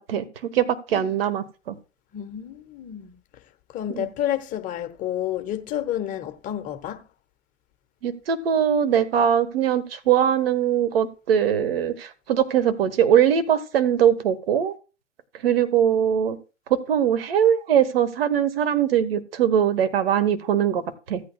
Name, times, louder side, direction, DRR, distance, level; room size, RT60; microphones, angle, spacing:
voice 1, 0.5-1.8 3.9-4.1 8.0-14.7 15.4-16.4 16.7-20.8 21.1-21.2, right 9 dB, 50° right, 1.4 m, -21 dB
voice 2, 2.1-3.1 3.7-7.0, left 11 dB, 20° left, 1.2 m, -30 dB
15.5 x 8.7 x 2.3 m
figure-of-eight pair, 115°, 37 cm